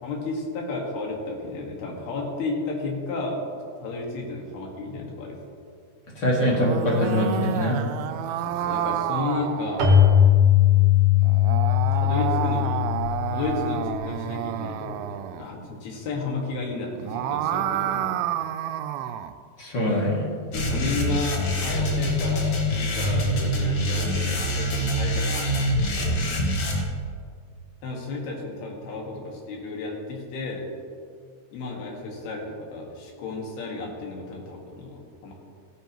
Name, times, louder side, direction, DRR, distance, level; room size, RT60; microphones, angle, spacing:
voice 1, 0.0-3.4 3.8-5.4 8.4-9.9 11.9-12.9 13.3-18.1 20.5-26.3 27.8-30.7 31.5-35.3, left 3 dB, 90° left, -1 dB, 3.8 m, -32 dB
voice 2, 6.2-7.8 19.6-20.2, left 1 dB, 40° left, -4 dB, 1.8 m, -23 dB
sound 1, 6.4-10.2 11.2-15.4 16.9-19.4, right 11 dB, 85° right, 2.4 m, -29 dB
Keyboard (musical), 9.8-14.3, left 10 dB, 60° right, 1.6 m, -20 dB
sound 2, 20.5-26.8, equal, 55° left, 2.5 m, -25 dB
16.0 x 10.5 x 3.0 m, 2.1 s
omnidirectional pair, 4.3 m